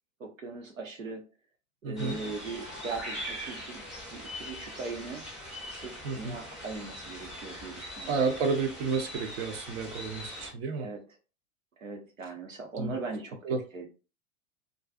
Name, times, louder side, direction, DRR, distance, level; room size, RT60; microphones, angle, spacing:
voice 1, 0.2-1.2 1.8-3.8 4.1-5.2 5.7-8.3 10.8-11.0 11.8-13.4 13.7-13.9, right 4 dB, 85° right, 0.8 m, -39 dB
voice 2, 1.8-2.2 6.0-6.4 8.1-10.9 12.8-13.0 13.4-13.6, right 4 dB, 50° right, 0.6 m, -31 dB
sound 1, 2.0-10.5, equal, ahead, 0.7 m, -41 dB
2.4 x 2.3 x 2.4 m
figure-of-eight pair, 95°, 39 cm